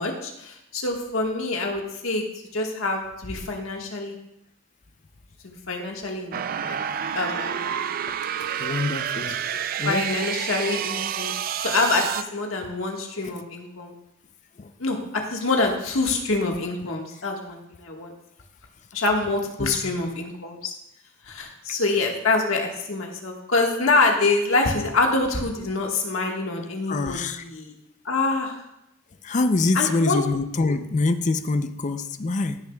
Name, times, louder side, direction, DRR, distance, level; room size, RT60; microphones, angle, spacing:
voice 1, 0.0-2.2 2.5-4.2 5.4-6.8 7.1-7.7 9.5-9.6 9.8-11.3 11.6-13.9 14.8-18.1 18.9-20.7 21.2-27.7 28.0-28.6 29.7-30.2, left 3 dB, 85° left, 1 dB, 1.5 m, -26 dB
sound 1, 6.3-12.2, right 9 dB, 45° right, 0.3 m, -29 dB
voice 2, 8.6-9.4 9.8-10.0 14.6-14.7 19.6-19.7 26.9-27.4 29.2-32.6, left 3 dB, 35° left, 10 dB, 0.5 m, -25 dB
16.0 x 6.9 x 2.3 m, 0.85 s
head